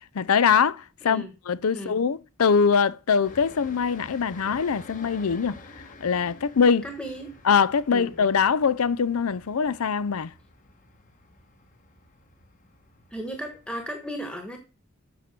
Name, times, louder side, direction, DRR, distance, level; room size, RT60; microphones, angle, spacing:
voice 1, 0.1-5.6 6.0-6.9 7.4-10.3, left 6 dB, 75° left, 0.5 m, -23 dB
sound 1, 3.2-13.9, left 2 dB, 35° left, 1.2 m, -49 dB
voice 2, 6.8-7.4 7.9-8.2 13.1-14.6, equal, 5° left, 1.2 m, -35 dB
8.0 x 6.7 x 6.1 m
head